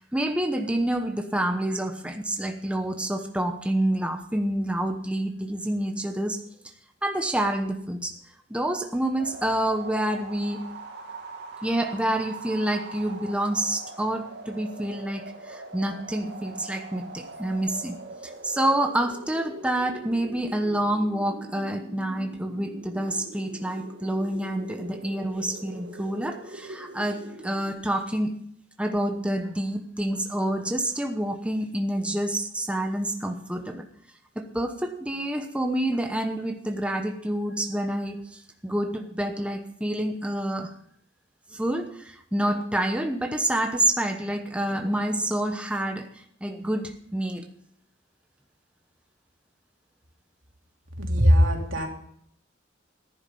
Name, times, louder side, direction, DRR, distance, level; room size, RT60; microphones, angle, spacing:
voice 1, 0.0-6.4 7.0-8.1 8.5-10.6 11.6-18.0 18.2-28.3 28.8-33.9 34.3-40.7 41.5-47.4, right 1 dB, 5° right, 4 dB, 1.0 m, -28 dB
sound 1, 9.2-27.7, right 2 dB, 55° right, 2.3 m, -42 dB
voice 2, 51.0-51.9, equal, 80° right, 2 dB, 2.7 m, -20 dB
14.5 x 11.0 x 5.4 m, 0.67 s
head